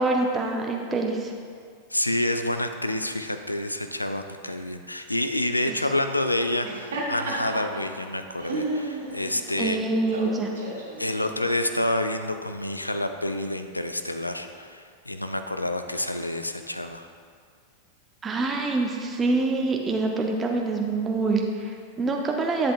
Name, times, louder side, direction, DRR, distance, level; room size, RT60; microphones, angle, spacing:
voice 1, 0.0-1.3 5.7-5.8 9.6-10.5 18.2-22.7, right 3 dB, 20° right, 2 dB, 0.6 m, -25 dB
voice 2, 1.9-9.8 11.0-17.1, left 1 dB, 85° left, 8 dB, 0.4 m, -28 dB
Laughter, 6.5-11.7, right 2 dB, 65° right, 1.8 m, -34 dB
11.0 x 7.7 x 2.4 m, 2.2 s
figure-of-eight pair, 90°, 0 cm